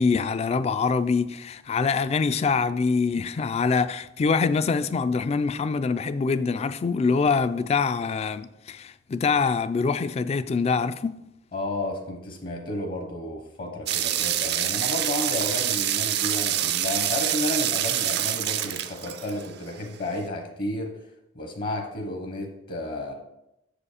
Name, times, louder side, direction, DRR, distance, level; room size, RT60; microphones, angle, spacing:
voice 1, 0.0-11.2, left 4 dB, 35° left, 0.3 m, -24 dB
voice 2, 11.5-20.9 21.3-23.1, left 1 dB, 50° left, 0.9 m, -32 dB
sound 1, 13.9-19.7, right 11 dB, 60° right, 0.5 m, -26 dB
6.6 x 5.0 x 4.9 m
head